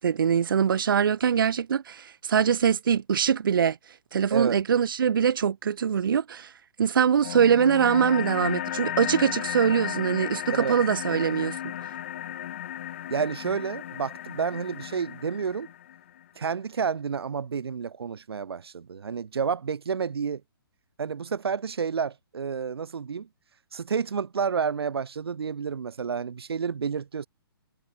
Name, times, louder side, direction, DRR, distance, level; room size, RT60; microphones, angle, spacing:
voice 1, 0.0-3.8 4.1-6.5 6.8-11.6, right 7 dB, 60° right, 0.8 m, -23 dB
sound 1, 7.2-16.2, left 11 dB, 30° left, 1.4 m, -34 dB
voice 2, 13.1-15.7 16.3-20.4 21.0-23.3 23.7-27.3, right 6 dB, 90° right, 1.7 m, -30 dB
hypercardioid pair, 175°, 13 cm